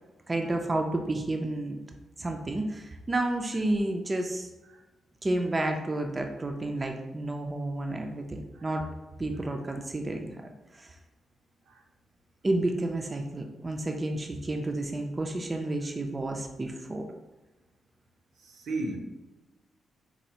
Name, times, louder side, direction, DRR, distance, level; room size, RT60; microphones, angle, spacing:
voice 1, 0.3-1.8 2.2-4.5 5.2-8.8 9.2-10.3 10.7-10.9 12.4-17.0, right 2 dB, 25° right, 3 dB, 0.3 m, -30 dB
voice 2, 18.4-19.0, right 2 dB, 80° right, 1 dB, 0.6 m, -35 dB
4.2 x 2.3 x 2.7 m, 1.1 s
cardioid pair, 125°, 0 cm